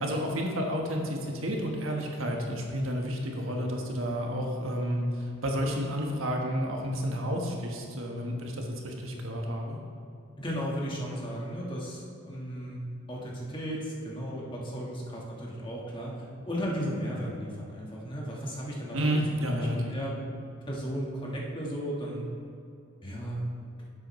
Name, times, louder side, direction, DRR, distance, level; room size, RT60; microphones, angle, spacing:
voice 1, 0.0-9.8 18.9-20.1, equal, 85° right, 1 dB, 1.4 m, -31 dB
voice 2, 10.4-12.8 13.1-19.2 19.5-20.1 20.7-22.2 23.0-23.4, equal, 25° left, -3 dB, 1.5 m, -35 dB
11.0 x 7.8 x 3.2 m, 2.6 s
head